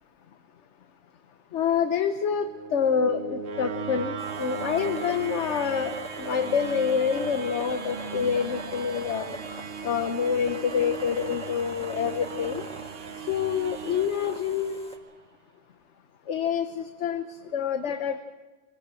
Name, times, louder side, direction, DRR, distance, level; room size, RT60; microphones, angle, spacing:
voice 1, 1.5-9.3 9.8-12.6 13.1-14.8 16.2-18.2, left 7 dB, 75° left, 8 dB, 1.2 m, -27 dB
sound 1, 2.1-15.1, right 6 dB, 60° right, 1.0 m, -37 dB
sound 2, 4.2-15.0, equal, 5° left, 1.8 m, -43 dB
22.5 x 16.5 x 7.6 m, 1.3 s
omnidirectional pair, 1.2 m